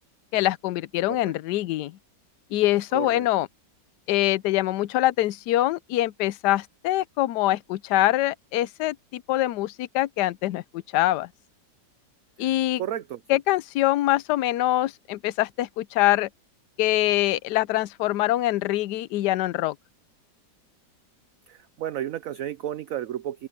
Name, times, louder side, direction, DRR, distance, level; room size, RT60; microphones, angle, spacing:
voice 1, 0.3-1.9 2.5-3.5 4.1-11.3 12.4-12.8 13.3-16.3 16.8-19.7, left 15 dB, 75° left, 1.1 m, -24 dB
voice 2, 2.9-3.3 12.4-12.5 12.8-13.4 21.5-23.5, right 11 dB, 65° right, 0.9 m, -33 dB
open air
omnidirectional pair, 2.0 m